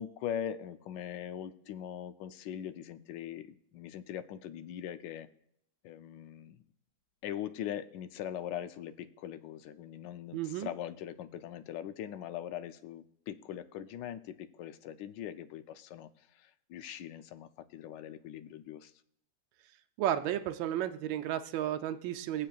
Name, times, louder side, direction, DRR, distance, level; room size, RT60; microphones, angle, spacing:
voice 1, 0.0-5.3 5.8-6.6 7.2-16.1 16.4-18.9, left 10 dB, 75° left, 11 dB, 1.2 m, -41 dB
voice 2, 10.3-10.7 20.0-22.5, right 11 dB, 85° right, 8 dB, 1.3 m, -33 dB
21.0 x 7.6 x 2.4 m, 0.76 s
omnidirectional pair, 2.0 m